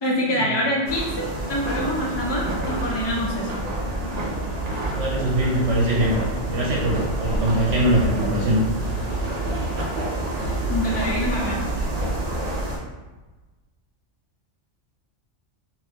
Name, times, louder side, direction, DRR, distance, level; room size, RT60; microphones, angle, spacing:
voice 1, 0.0-3.6 10.7-11.7, equal, 30° left, -3 dB, 0.5 m, -25 dB
sound 1, 0.9-12.8, right 1 dB, 50° right, 0.5 m, -27 dB
voice 2, 4.9-6.2 6.5-9.0, right 1 dB, 75° right, -4 dB, 1.0 m, -22 dB
2.8 x 2.6 x 3.4 m, 1.2 s
omnidirectional pair, 1.3 m